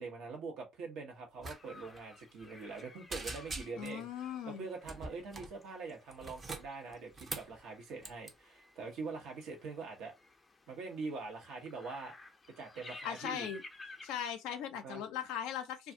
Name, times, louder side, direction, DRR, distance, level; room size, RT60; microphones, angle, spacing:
voice 1, 0.0-4.1 4.5-10.1 10.7-12.1 12.6-13.5 14.8-15.0, right 4 dB, 75° right, 0.9 m, -44 dB
sound 1, 1.4-14.3, left 2 dB, 30° left, 0.5 m, -55 dB
sound 2, 1.4-1.6 1.8-2.0 2.4-2.8 3.1-4.0 4.8-5.6 6.1-7.6 8.0-8.3, right 3 dB, 40° right, 0.6 m, -43 dB
voice 2, 3.8-4.7 13.0-13.6 14.0-15.9, left 9 dB, 80° left, 0.4 m, -39 dB
2.4 x 2.3 x 2.6 m
hypercardioid pair, 60°, 0 cm